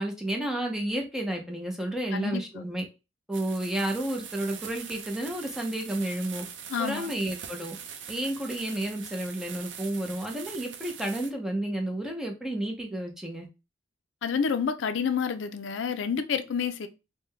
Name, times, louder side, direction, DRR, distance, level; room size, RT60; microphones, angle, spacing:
voice 1, 0.0-2.8 3.3-6.4 6.8-7.8 8.1-13.5, right 1 dB, 5° right, 0.7 m, -31 dB
voice 2, 2.1-2.7 6.7-7.1 14.2-16.9, left 6 dB, 90° left, 0.4 m, -29 dB
sound 1, 3.3-11.3, right 7 dB, 75° right, 0.5 m, -42 dB
3.7 x 2.2 x 3.2 m
head